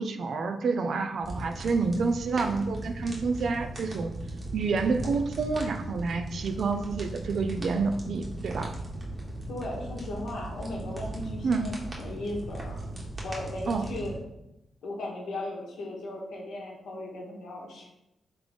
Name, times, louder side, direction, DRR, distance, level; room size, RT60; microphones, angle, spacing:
voice 1, 0.0-4.1 4.5-8.7 11.4-11.7 13.7-13.8, right 4 dB, 70° right, 8 dB, 0.4 m, -28 dB
sound 1, 1.2-14.2, right 1 dB, 35° right, 1.3 m, -38 dB
voice 2, 9.5-12.8 13.2-14.1 14.8-17.9, left 1 dB, 80° left, -1 dB, 1.1 m, -37 dB
3.3 x 3.3 x 4.0 m, 0.88 s
supercardioid pair, 50°, 0 cm